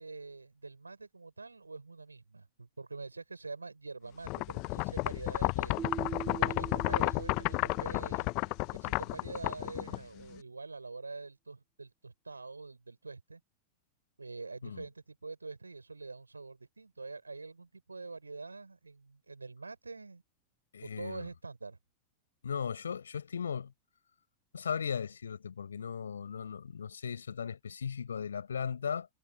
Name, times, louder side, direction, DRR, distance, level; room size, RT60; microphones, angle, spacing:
voice 1, 0.0-13.4 14.2-20.2 20.8-21.8, right 3 dB, 80° right, 6.2 m, -45 dB
sound 1, 4.2-10.4, left 29 dB, 45° left, 0.8 m, -32 dB
Keyboard (musical), 5.8-8.6, right 7 dB, 20° right, 4.3 m, -43 dB
voice 2, 20.7-21.3 22.4-23.7 24.5-29.1, left 7 dB, 70° left, 4.6 m, -37 dB
figure-of-eight pair, 90°, 0 cm